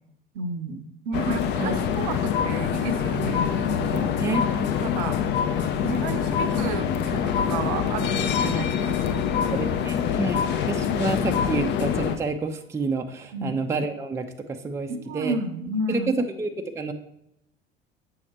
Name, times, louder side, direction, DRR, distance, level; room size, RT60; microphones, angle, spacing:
voice 1, 0.3-0.8 1.1-4.1 4.8-5.2 5.8-9.6 11.6-11.7 13.3-13.6 14.9-16.1, right 3 dB, 55° right, 9 dB, 0.7 m, -32 dB
sound 1, 1.1-12.2, left 8 dB, 35° left, 0.6 m, -25 dB
sound 2, 2.3-3.0 3.3-4.1 4.3-5.1 5.3-6.1 6.3-7.1 7.3-8.1 8.3-9.1 9.3-10.1 10.3-11.1 11.3-12.1, left 6 dB, 60° left, 1.9 m, -30 dB
voice 2, 3.9-4.4 9.5-10.4 10.7-14.3 14.6-15.3 15.9-16.9, right 3 dB, 10° right, 5 dB, 0.5 m, -28 dB
7.7 x 5.7 x 3.0 m, 0.80 s
figure-of-eight pair, 70°, 30 cm